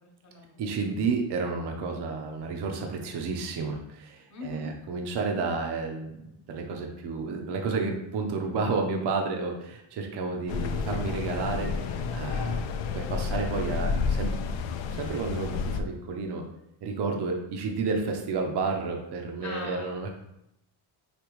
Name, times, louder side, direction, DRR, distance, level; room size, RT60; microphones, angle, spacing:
voice 1, 0.0-0.6 4.3-4.7 19.4-20.1, left 2 dB, 35° left, -1 dB, 1.2 m, -40 dB
voice 2, 0.6-6.1 6.5-12.6 12.9-14.6 15.0-16.4 16.8-20.1, right 4 dB, 50° right, 3 dB, 0.8 m, -31 dB
sound 1, 10.5-15.8, left 5 dB, 65° left, 0.5 m, -30 dB
5.1 x 2.9 x 3.1 m, 0.83 s
cardioid pair, 135°, 50 cm